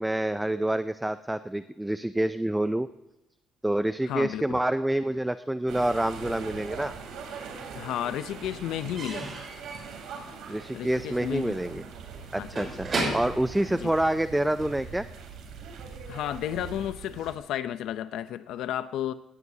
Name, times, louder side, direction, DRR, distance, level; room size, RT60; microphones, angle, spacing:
voice 1, 0.0-2.9 3.6-6.9 10.5-11.8 12.3-15.1, right 1 dB, 5° right, 11 dB, 0.4 m, -27 dB
voice 2, 4.1-4.6 7.7-9.4 10.7-11.6 12.3-12.6 13.8-13.9 16.1-19.1, left 11 dB, 80° left, 12 dB, 0.6 m, -32 dB
sound 1, 5.7-17.4, right 5 dB, 85° right, 3.4 m, -42 dB
Slam / Squeak / Wood, 7.4-7.5 7.8-14.6, right 2 dB, 30° right, 6.2 m, -36 dB
18.0 x 17.0 x 2.8 m, 0.99 s
cardioid pair, 160°, 0 cm